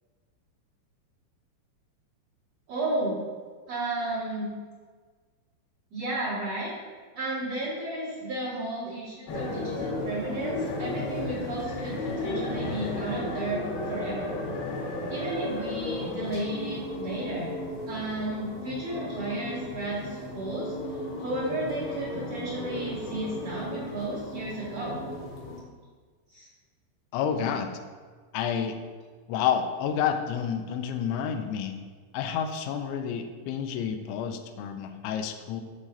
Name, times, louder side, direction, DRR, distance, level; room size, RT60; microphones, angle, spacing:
voice 1, 2.7-3.2 3.7-4.5 5.9-6.7 7.1-14.3 15.1-17.5 17.9-20.7 21.2-25.0 26.3-26.5 27.4-27.5, right 2 dB, 40° right, -9 dB, 2.5 m, -33 dB
sound 1, 9.3-25.6, left 2 dB, 70° left, 2.5 m, -34 dB
voice 2, 27.1-27.7 28.3-28.8 29.3-31.8 32.1-35.6, left 8 dB, 85° left, 7 dB, 2.9 m, -29 dB
13.0 x 4.8 x 2.8 m, 1.5 s
omnidirectional pair, 5.4 m